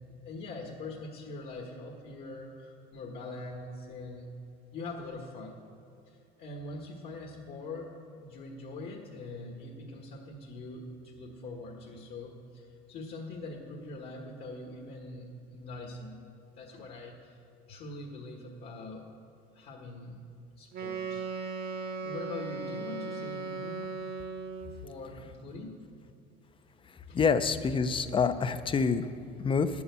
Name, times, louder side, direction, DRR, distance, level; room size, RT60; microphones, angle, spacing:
voice 1, 0.1-4.3 4.7-5.6 6.0-16.2 16.6-17.4 17.7-19.1 19.5-20.3 20.6-21.3 22.0-23.9 24.6-25.8 27.0-27.2, left 2 dB, 60° left, 0 dB, 1.6 m, -43 dB
Wind instrument woodwind instrument, 20.7-24.8, right 4 dB, 60° right, 1.4 m, -37 dB
voice 2, 27.1-29.0 29.4-29.7, left 5 dB, 30° left, 12 dB, 0.7 m, -26 dB
10.0 x 7.1 x 8.3 m, 2.7 s
supercardioid pair, 100°, 18 cm